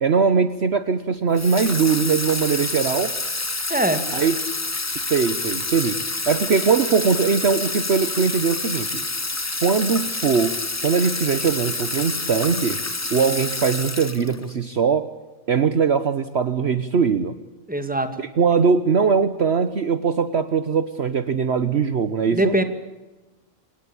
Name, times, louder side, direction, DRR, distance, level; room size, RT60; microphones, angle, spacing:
voice 1, 0.0-3.2 4.1-4.3 5.1-6.0 6.3-9.0 9.6-10.6 10.8-12.8 13.1-15.1 15.5-17.3 18.4-22.5, right 5 dB, 55° right, 12 dB, 1.2 m, -21 dB
Water tap faucet / Sink (filling or washing), 1.4-14.5, left 2 dB, 15° left, 0.6 m, -28 dB
voice 2, 3.7-4.1 17.7-18.2 22.3-22.6, right 1 dB, 5° right, 8 dB, 2.2 m, -22 dB
27.5 x 18.0 x 8.6 m, 1.1 s
omnidirectional pair, 1.4 m